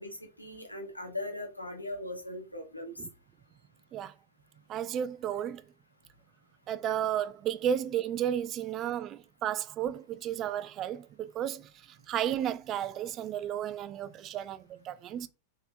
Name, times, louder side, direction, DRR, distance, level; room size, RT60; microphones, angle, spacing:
voice 1, 0.0-2.9, left 1 dB, 85° left, 1.0 m, -39 dB
voice 2, 4.7-5.6 6.7-11.7 12.1-15.3, right 10 dB, 35° right, 0.3 m, -33 dB
3.6 x 3.4 x 2.4 m
figure-of-eight pair, 90°, 0 cm